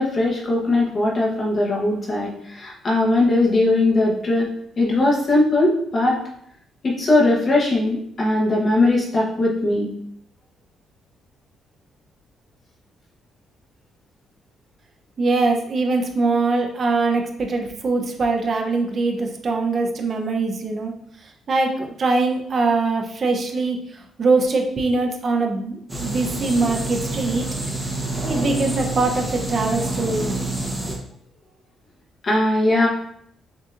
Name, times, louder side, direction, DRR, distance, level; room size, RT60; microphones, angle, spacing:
voice 1, 0.0-4.5 4.8-6.2 6.8-9.9 32.2-32.9, left 2 dB, 35° left, -3 dB, 1.0 m, -19 dB
voice 2, 15.2-20.9 21.2-27.5 28.3-30.3, right 3 dB, 40° right, 2 dB, 0.7 m, -22 dB
sound 1, 25.9-31.0, right 2 dB, 10° right, 0.9 m, -27 dB
6.5 x 2.7 x 2.5 m, 0.68 s
cardioid pair, 140°, 0 cm